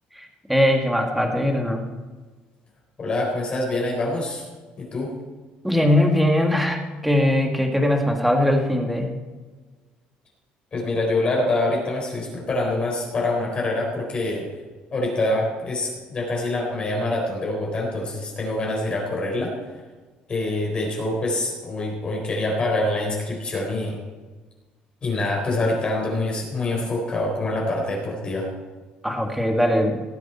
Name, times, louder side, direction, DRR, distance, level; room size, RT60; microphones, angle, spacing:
voice 1, 0.1-1.8 5.6-9.1 29.0-30.0, left 1 dB, 5° right, 3 dB, 1.8 m, -21 dB
voice 2, 3.0-4.5 4.8-5.1 10.7-14.5 14.9-19.5 20.3-24.0 25.0-28.5, left 2 dB, 35° left, -2 dB, 4.1 m, -25 dB
18.0 x 8.2 x 4.4 m, 1.3 s
cardioid pair, 120°, 3 cm